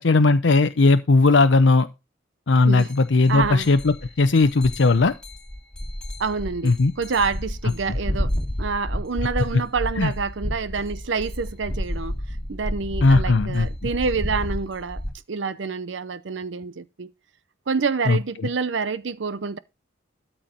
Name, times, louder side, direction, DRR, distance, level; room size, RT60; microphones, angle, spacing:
voice 1, 0.0-1.9 2.5-5.1 6.6-6.9 10.0-10.1 13.0-13.7 18.1-18.2, left 3 dB, 70° left, 0.6 m, -17 dB
sound 1, 2.8-2.9 3.3-15.1, equal, 5° left, 2.4 m, -30 dB
voice 2, 3.3-3.7 6.2-8.3 8.6-15.0 15.3-17.1 17.7-19.6, right 4 dB, 70° right, 0.6 m, -27 dB
13.0 x 4.4 x 5.2 m
head